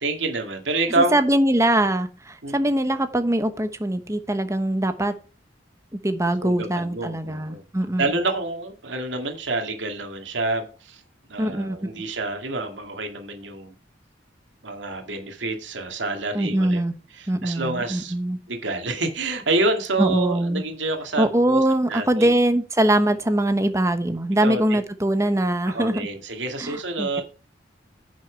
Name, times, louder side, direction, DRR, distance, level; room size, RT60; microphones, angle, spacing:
voice 1, 0.0-1.1 2.4-2.7 6.4-7.6 8.0-11.0 11.3-13.7 14.6-16.8 17.1-18.1 18.5-21.6 21.9-22.3 24.4-24.8 25.7-27.2, right 2 dB, 90° right, 4 dB, 2.2 m, -27 dB
voice 2, 1.0-5.1 6.0-8.1 11.4-11.8 16.3-16.9 17.3-18.4 20.0-20.6 21.2-26.1 26.6-27.2, right 1 dB, 15° right, 9 dB, 1.0 m, -22 dB
10.0 x 6.3 x 4.5 m, 0.36 s
head